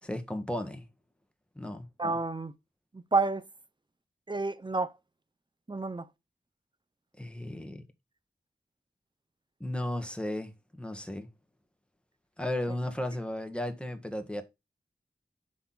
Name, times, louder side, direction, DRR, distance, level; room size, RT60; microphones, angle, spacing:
voice 1, 0.0-0.8 1.5-1.8 7.2-7.8 9.6-11.3 12.4-14.4, left 1 dB, 5° left, 1.7 m, -35 dB
voice 2, 2.0-2.5 2.9-3.4 4.3-4.9 5.7-6.1, right 3 dB, 30° right, 0.9 m, -29 dB
6.9 x 5.9 x 4.3 m
wide cardioid pair, 60°, 17 cm